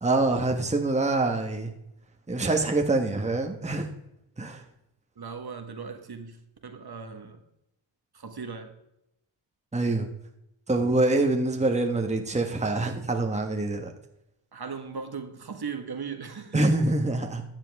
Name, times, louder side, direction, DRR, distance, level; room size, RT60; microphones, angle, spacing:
voice 1, 0.0-1.7 2.3-3.9 4.4-4.6 9.7-10.1 10.7-13.9 16.5-17.4, right 2 dB, 15° right, 4 dB, 1.2 m, -25 dB
voice 2, 5.2-6.4 6.6-7.4 8.1-8.7 14.5-16.7, right 5 dB, 50° right, 6 dB, 1.5 m, -38 dB
13.0 x 7.4 x 3.5 m, 0.84 s
cardioid pair, 65°, 50 cm